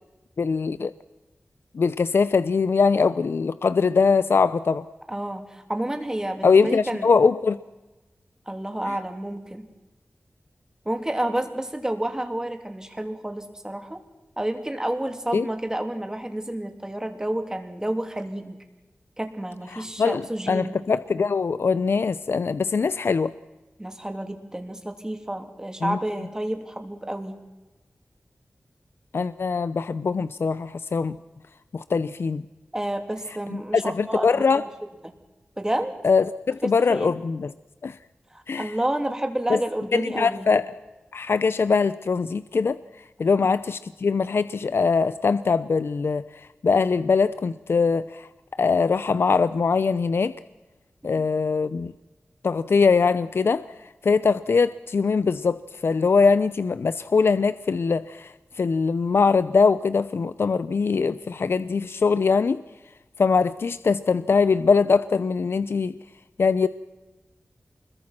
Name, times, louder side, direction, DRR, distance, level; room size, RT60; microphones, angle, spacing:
voice 1, 0.4-0.9 1.7-4.8 6.4-7.6 15.3-15.5 19.7-23.3 25.8-26.0 29.1-31.2 31.7-32.4 33.5-34.6 36.0-37.5 37.8-37.9 38.5-38.7 39.5-39.6 39.9-40.7 41.1-42.8 43.2-46.2 46.6-48.3 48.6-50.3 51.0-51.9 52.4-53.6 54.0-55.6 55.8-58.3 58.6-62.6 63.2-65.9 66.4-66.7, left 5 dB, 75° left, 14 dB, 0.7 m, -22 dB
voice 2, 5.1-7.1 8.5-9.7 10.8-14.0 14.4-18.6 19.2-20.8 23.8-27.4 32.7-34.6 35.0-35.1 35.6-35.9 36.6-37.1 38.3-40.5 43.3-43.5 51.0-51.3, right 1 dB, 15° right, 5 dB, 3.2 m, -30 dB
29.0 x 22.0 x 6.1 m, 1.1 s
wide cardioid pair, 100°, 4 cm